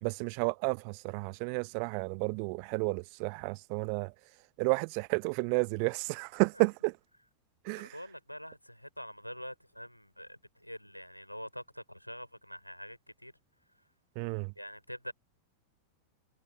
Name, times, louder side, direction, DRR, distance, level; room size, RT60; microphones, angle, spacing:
voice 1, 0.0-4.1 4.6-7.0 7.6-8.0 14.2-14.5, right 40 dB or more, 45° right, 0.8 m, -31 dB
voice 2, 7.8-13.3 14.6-15.1, equal, 90° left, 5.5 m, -45 dB
figure-of-eight pair, 90°, 0 cm